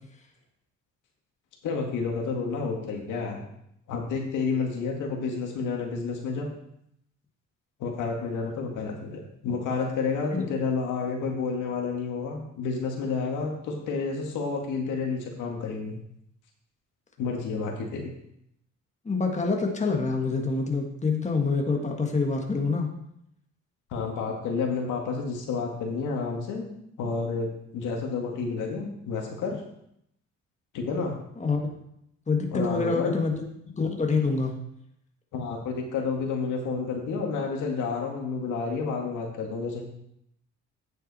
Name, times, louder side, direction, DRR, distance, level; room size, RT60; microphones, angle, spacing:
voice 1, 1.6-3.4 3.9-6.5 7.8-16.0 17.2-18.1 23.9-26.7 27.0-29.6 30.7-31.1 32.5-33.1 35.3-39.8, left 4 dB, 85° left, 1 dB, 2.1 m, -30 dB
voice 2, 19.0-22.9 31.4-31.6 32.3-33.4 33.8-34.6, left 4 dB, 25° left, 2 dB, 1.7 m, -26 dB
9.2 x 7.7 x 4.3 m, 0.75 s
cardioid pair, 90°, 30 cm